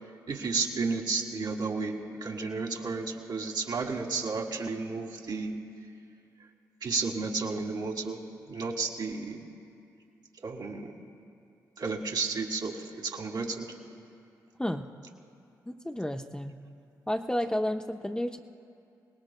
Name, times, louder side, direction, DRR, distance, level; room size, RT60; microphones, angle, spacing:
voice 1, 0.3-5.6 6.8-8.2 8.5-9.4 10.4-10.9 11.8-13.7, right 4 dB, 60° right, 1 dB, 1.8 m, -32 dB
voice 2, 15.7-16.6 17.1-18.4, left 1 dB, 10° left, 4 dB, 0.7 m, -31 dB
27.0 x 19.0 x 2.2 m, 2.4 s
supercardioid pair, 45°, 8 cm